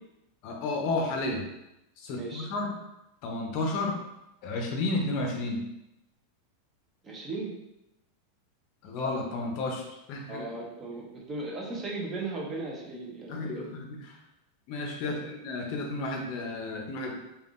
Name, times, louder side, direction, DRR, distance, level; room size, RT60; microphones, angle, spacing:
voice 1, 0.4-1.4 2.0-2.8 3.2-4.0 4.4-5.6 8.8-10.5 13.3-14.2 14.7-17.1, left 2 dB, 50° left, 1 dB, 0.6 m, -32 dB
voice 2, 2.1-2.5 7.0-7.5 10.3-13.6 15.0-15.2, right 3 dB, 20° right, -2 dB, 0.7 m, -37 dB
3.5 x 2.3 x 2.5 m, 0.88 s
supercardioid pair, 140°, 0 cm